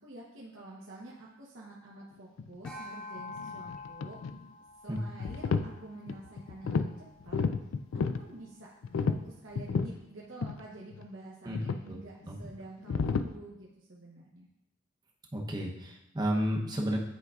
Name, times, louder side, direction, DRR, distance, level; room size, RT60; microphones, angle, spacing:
voice 1, 0.0-4.2 4.6-6.9 7.2-7.4 8.2-8.7 9.0-14.5, right 2 dB, 70° right, -5 dB, 0.9 m, -48 dB
sound 1, 2.4-2.7 3.2-4.5 5.0-5.7 6.1-6.9 7.2-8.2 8.8-10.0 10.4-10.6 10.9-11.0 11.5-11.9 12.8-13.2, left 5 dB, 75° left, 0.4 m, -31 dB
sound 2, 2.6-7.2, left 3 dB, 5° left, 1.1 m, -47 dB
voice 2, 15.3-17.0, equal, 20° right, -1 dB, 0.8 m, -32 dB
9.2 x 4.7 x 2.4 m, 0.87 s
head